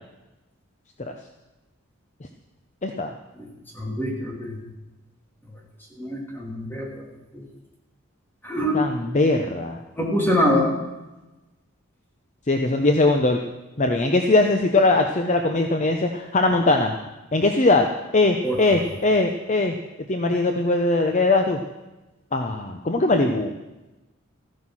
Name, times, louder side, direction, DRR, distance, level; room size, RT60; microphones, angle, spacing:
voice 1, 2.8-3.1 8.7-9.8 12.5-13.4 13.8-16.9 17.3-17.9 18.1-19.7 20.1-21.6 22.3-23.5, left 2 dB, 35° left, 4 dB, 0.7 m, -20 dB
voice 2, 3.7-4.6 6.0-7.0 7.3-7.4 8.4-8.9 10.0-10.7 18.4-18.6, left 1 dB, 10° left, -1 dB, 2.7 m, -24 dB
14.0 x 9.7 x 6.2 m, 1.1 s
head